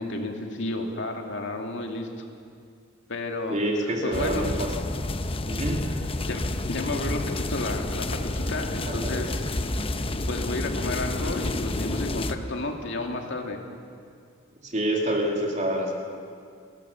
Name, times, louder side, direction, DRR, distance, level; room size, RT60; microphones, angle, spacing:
voice 1, 0.0-2.1 3.1-4.5 6.2-9.4 10.3-13.6, left 2 dB, 65° left, 3 dB, 2.5 m, -32 dB
voice 2, 3.5-4.7 5.5-6.0 8.9-9.1 14.6-15.9, right 1 dB, 35° right, 1 dB, 2.6 m, -27 dB
sound 1, 4.1-12.4, left 2 dB, 30° left, 0.8 m, -29 dB
30.0 x 14.0 x 7.1 m, 2.3 s
head